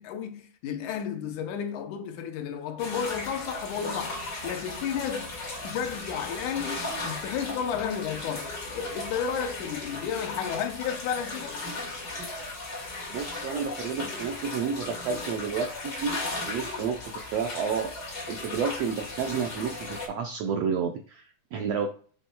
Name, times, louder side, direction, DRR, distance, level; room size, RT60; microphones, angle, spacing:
voice 1, 0.0-5.3 5.6-11.6, left 8 dB, 75° left, 2.2 m, -32 dB
sound 1, 2.8-20.1, left 2 dB, 35° left, 2.1 m, -36 dB
voice 2, 13.1-21.9, right 6 dB, 80° right, 1.5 m, -31 dB
8.9 x 7.3 x 2.3 m
omnidirectional pair, 3.8 m